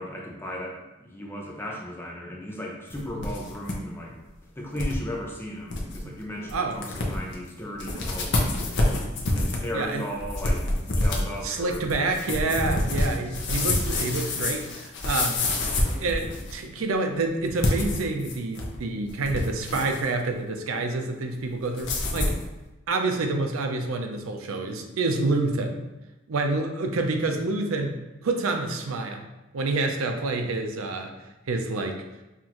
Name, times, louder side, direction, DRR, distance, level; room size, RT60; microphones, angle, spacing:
voice 1, 0.0-4.2 4.6-9.0 9.3-11.9 12.5-12.9, equal, 10° left, -1 dB, 0.6 m, -36 dB
sound 1, 2.9-3.8 4.1-4.2 4.8-5.0 5.4-5.5 5.7-6.0 6.5-6.6 6.8-7.3 7.8-16.6 17.5-18.8 19.1-20.1 21.8-22.4, left 2 dB, 55° left, 0.7 m, -27 dB
voice 2, 11.4-15.5 16.0-22.4 22.9-25.8 26.3-27.9 28.2-29.3 29.5-31.1 31.5-32.0, right 3 dB, 85° right, 4 dB, 0.5 m, -28 dB
5.8 x 2.5 x 2.9 m, 1.0 s
head